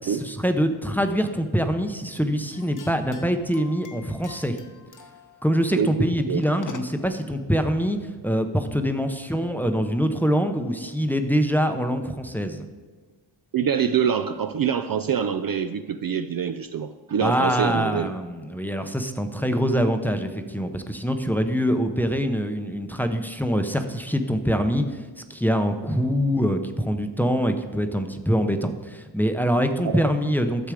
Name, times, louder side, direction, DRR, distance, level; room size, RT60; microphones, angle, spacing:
voice 1, 0.0-4.6 5.4-8.0 8.2-12.7 17.2-30.7, equal, 5° left, 6 dB, 0.7 m, -24 dB
sound 1, 2.5-7.1, left 4 dB, 40° left, 1.0 m, -45 dB
voice 2, 13.5-18.1 26.1-26.2 29.8-30.0, right 7 dB, 50° right, 10 dB, 0.4 m, -25 dB
12.5 x 7.2 x 4.9 m, 1.4 s
wide cardioid pair, 120°, 48 cm